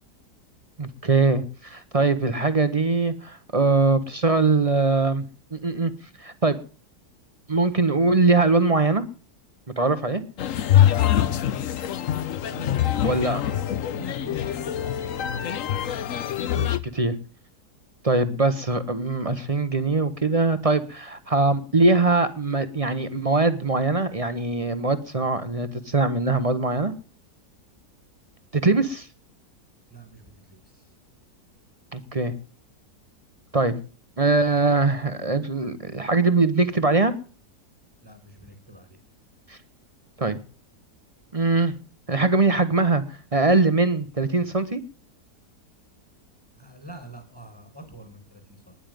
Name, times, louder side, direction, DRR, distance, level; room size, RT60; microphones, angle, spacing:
voice 1, 0.8-5.2 5.5-5.9 6.2-6.6 7.5-9.0 9.8-10.2 13.0-13.4 16.6-17.1 18.0-26.9 28.5-29.1 31.9-32.3 33.5-33.7 34.2-37.1 39.5-39.6 40.2-40.4 41.3-41.7 42.1-44.8, right 3 dB, 30° right, 11 dB, 0.8 m, -22 dB
sound 1, 10.4-16.8, left 11 dB, 60° left, 1.1 m, -24 dB
voice 2, 12.4-15.5 26.4-26.5 29.9-30.9 38.0-39.0 46.6-48.8, right 2 dB, 5° left, 6 dB, 4.6 m, -44 dB
10.5 x 8.7 x 9.2 m, 0.38 s
omnidirectional pair, 1.8 m